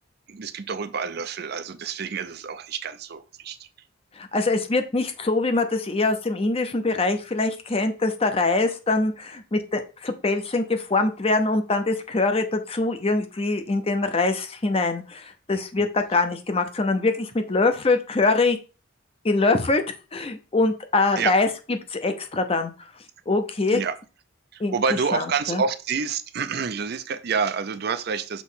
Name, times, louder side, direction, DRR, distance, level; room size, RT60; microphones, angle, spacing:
voice 1, 0.3-3.7 21.2-21.3 23.7-24.0 24.5-28.4, right 5 dB, 55° right, 12 dB, 0.5 m, -28 dB
voice 2, 4.2-18.6 19.2-19.8 20.1-22.7 23.3-23.8 24.6-24.7 25.1-25.6, left 3 dB, 30° left, 8 dB, 0.7 m, -23 dB
6.1 x 3.1 x 5.6 m, 0.33 s
head